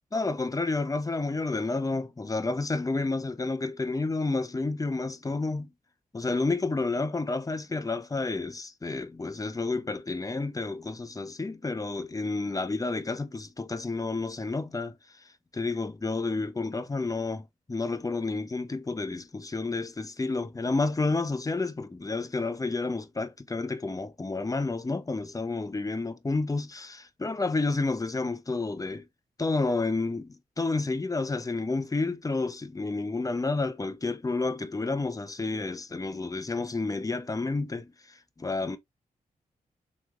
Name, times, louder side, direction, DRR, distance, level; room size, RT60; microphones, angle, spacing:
voice 1, 0.1-5.7 6.1-14.9 15.5-29.0 29.4-38.8, left 3 dB, 20° left, 0.7 m, -30 dB
3.1 x 3.0 x 2.4 m
supercardioid pair, 45°, 16 cm